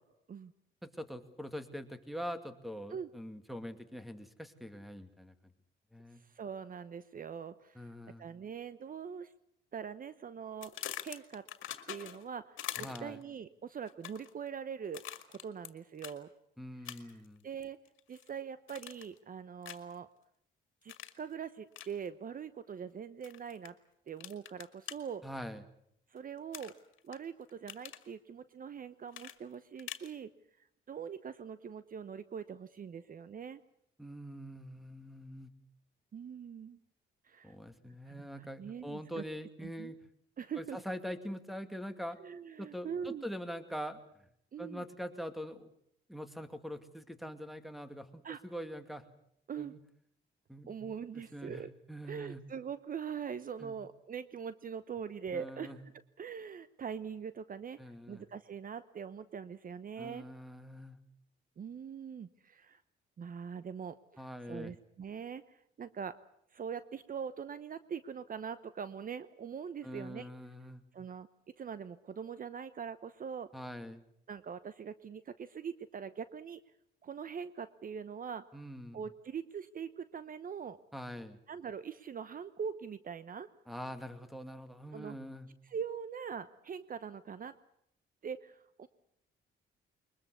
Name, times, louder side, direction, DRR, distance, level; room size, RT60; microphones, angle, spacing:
voice 1, 0.8-5.3 5.9-6.2 7.7-8.2 12.8-13.2 16.6-17.5 25.2-25.6 34.0-35.5 37.4-40.0 40.6-42.2 42.6-44.0 44.6-45.7 46.1-49.1 49.6-49.8 50.5-50.7 51.1-51.6 51.9-52.4 53.6-53.8 55.3-55.8 57.8-58.2 60.0-61.0 64.2-64.7 69.8-70.8 73.5-74.0 78.5-79.1 80.9-81.4 83.7-85.5, equal, ahead, 9 dB, 2.3 m, -43 dB
voice 2, 6.1-7.9 8.2-9.3 9.7-11.5 11.9-12.6 13.0-15.0 15.3-16.3 16.9-17.0 17.4-17.8 18.1-20.1 20.8-23.8 24.1-25.2 26.1-26.7 27.0-30.3 30.9-33.6 36.1-36.8 37.2-37.5 38.1-39.2 39.6-39.9 40.4-40.8 42.2-43.2 44.5-44.8 48.2-48.4 49.5-49.8 50.7-51.7 52.0-55.8 56.2-60.3 61.6-62.8 63.2-66.2 66.5-70.3 70.9-71.3 71.6-73.5 74.3-76.6 77.0-78.4 78.9-80.8 81.5-83.5 84.9-85.2 85.6-87.5 88.2-88.9, right 7 dB, 45° right, 14 dB, 0.9 m, -42 dB
sound 1, 10.6-12.3 12.6-13.2 13.9-14.3 14.9-15.7 16.0-16.2 16.8-17.2 17.6-18.3 18.7-19.2 19.6-19.9 20.9-21.2 21.7-21.9 23.2-23.7 24.2-25.0 26.5-27.2 27.5-28.0 29.1-30.1, left 12 dB, 80° left, 2.1 m, -44 dB
22.5 x 21.0 x 8.3 m, 0.72 s
cardioid pair, 90°, 20 cm